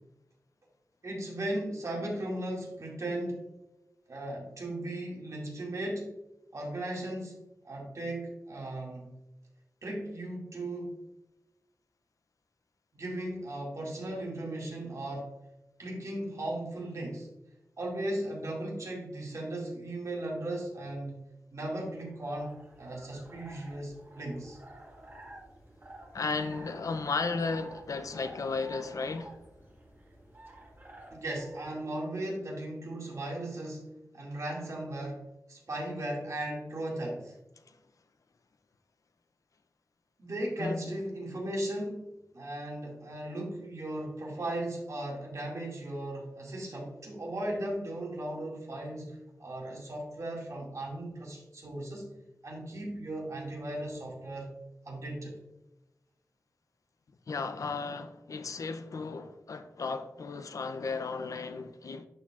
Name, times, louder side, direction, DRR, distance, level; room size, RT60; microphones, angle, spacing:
voice 1, 1.0-3.4 4.1-6.1 6.5-7.4 7.6-9.1 9.8-11.0 12.9-15.3 15.8-17.3 17.8-21.2 21.5-24.6 31.1-35.2 35.5-37.3 40.2-42.1 42.3-52.1 52.4-54.5 54.9-55.3, right 1 dB, 70° right, 2.2 m, -37 dB
sound 1, 22.0-31.8, right 1 dB, 35° right, 1.7 m, -51 dB
voice 2, 26.1-29.4 40.6-41.0 57.3-62.1, left 4 dB, 80° left, 0.5 m, -34 dB
11.0 x 4.6 x 2.4 m
wide cardioid pair, 100°, 6 cm